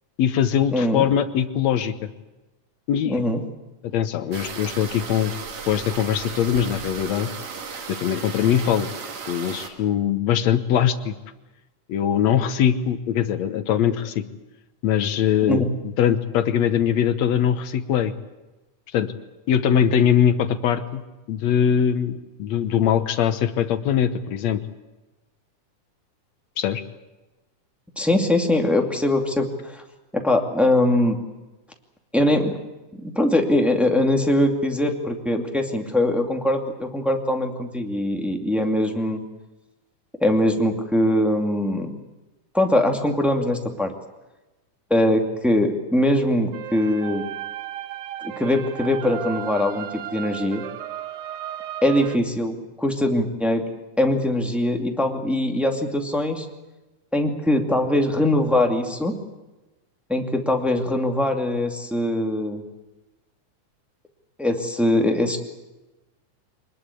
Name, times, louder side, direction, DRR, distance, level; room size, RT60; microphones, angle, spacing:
voice 1, 0.2-2.1 2.9-3.2 3.8-5.3 5.7-7.3 7.9-8.9 9.3-11.1 11.9-14.2 14.8-15.6 16.0-18.1 18.9-19.1 19.5-21.0 21.3-24.6 26.6-26.8, left 9 dB, 65° left, 11 dB, 2.1 m, -21 dB
voice 2, 0.7-1.0 3.0-3.4 15.5-15.6 28.0-29.8 30.1-31.2 32.1-32.6 33.0-39.2 40.2-41.9 42.5-43.9 44.9-47.2 48.2-50.6 51.8-53.6 54.0-56.5 57.1-59.2 60.1-62.6 64.4-65.4, left 1 dB, ahead, 2 dB, 1.8 m, -22 dB
sound 1, 4.3-9.7, right 5 dB, 60° right, 3.4 m, -35 dB
sound 2, 46.5-52.2, right 11 dB, 85° right, 2.7 m, -35 dB
24.0 x 20.5 x 8.5 m, 1.1 s
omnidirectional pair, 3.6 m